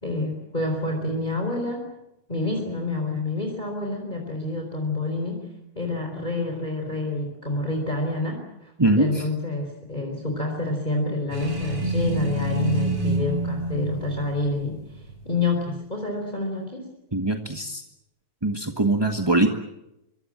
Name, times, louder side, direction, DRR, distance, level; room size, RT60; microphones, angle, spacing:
voice 1, 0.0-1.9 2.3-5.5 5.8-16.9, left 2 dB, 15° left, 3 dB, 4.1 m, -28 dB
sound 1, 11.3-15.2, right 1 dB, 55° right, 6.3 m, -27 dB
voice 2, 17.1-17.8 18.4-19.5, right 2 dB, 15° right, 3 dB, 0.9 m, -22 dB
25.5 x 24.5 x 7.6 m, 0.87 s
omnidirectional pair, 3.3 m